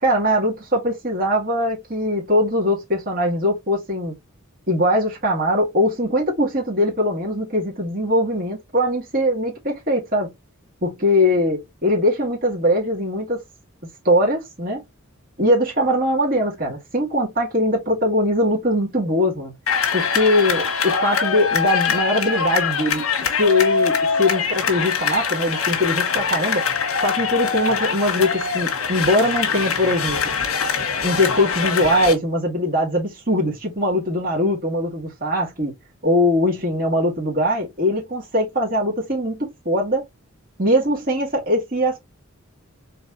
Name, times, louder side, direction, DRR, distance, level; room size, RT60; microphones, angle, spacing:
voice 1, 0.0-4.1 4.7-10.3 10.8-13.4 14.0-14.8 15.4-19.5 19.9-23.1 23.4-26.7 27.0-30.3 31.0-35.7 36.0-40.0 40.6-42.0, left 1 dB, 45° right, 2.5 m, -21 dB
sound 1, 19.7-32.1, left 6 dB, 80° left, 1.5 m, -23 dB
4.5 x 4.0 x 2.7 m
head